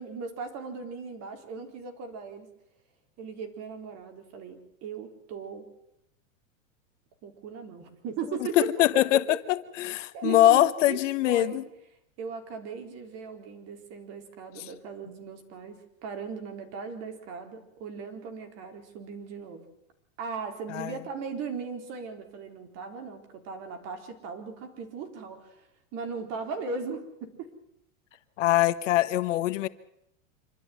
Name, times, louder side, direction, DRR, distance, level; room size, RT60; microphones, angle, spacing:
voice 1, 0.0-2.5 3.2-5.7 7.2-8.7 9.1-9.2 10.1-11.6 12.2-19.7 20.2-25.7 25.9-27.5, right 5 dB, 40° right, 6 dB, 4.1 m, -38 dB
voice 2, 8.6-9.2 9.5-11.6 20.7-21.0 28.4-29.7, left 15 dB, 65° left, 14 dB, 1.3 m, -23 dB
26.0 x 13.0 x 9.4 m, 0.80 s
supercardioid pair, 135°, 39 cm